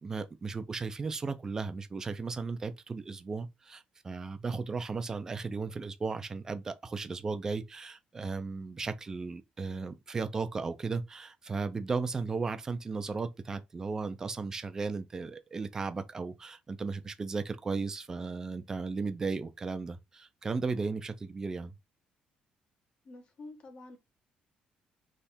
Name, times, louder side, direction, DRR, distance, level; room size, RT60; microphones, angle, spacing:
voice 1, 0.0-21.7, right 4 dB, 20° right, 0.6 m, -35 dB
voice 2, 23.0-24.0, left 2 dB, 40° left, 1.3 m, -48 dB
3.5 x 3.3 x 4.3 m
cardioid pair, 160°, 3 cm